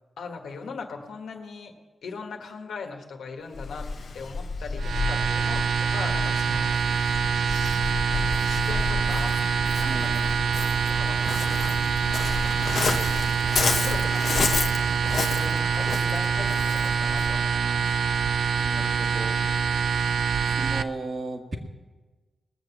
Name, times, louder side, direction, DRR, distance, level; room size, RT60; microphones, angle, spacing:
voice 1, 0.2-1.7 2.0-3.9 4.1-6.8 7.3-7.8 8.1-10.3 10.9-11.8 13.7-14.7 15.4-17.8, left 4 dB, 85° left, 3 dB, 1.7 m, -39 dB
Waves surf, 3.5-17.4, left 4 dB, 65° left, 1.0 m, -31 dB
sound 1, 4.8-20.8, right 6 dB, 85° right, 0.5 m, -25 dB
voice 2, 9.9-10.5 18.6-19.4 20.4-21.6, right 2 dB, 45° right, 3 dB, 1.9 m, -36 dB
20.0 x 7.0 x 7.2 m, 1.3 s
cardioid pair, 60°, 0 cm